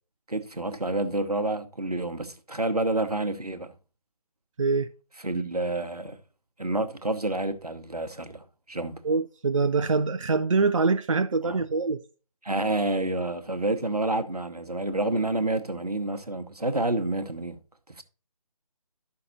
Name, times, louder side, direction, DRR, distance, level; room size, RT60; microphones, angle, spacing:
voice 1, 0.3-3.7 5.2-6.2 6.6-9.0 11.4-11.6 12.4-17.6 17.9-18.0, right 2 dB, 90° right, 1.0 m, -29 dB
voice 2, 4.6-4.9 9.0-12.0, right 4 dB, 55° right, 0.5 m, -24 dB
12.5 x 5.7 x 2.8 m
figure-of-eight pair, 150°, 19 cm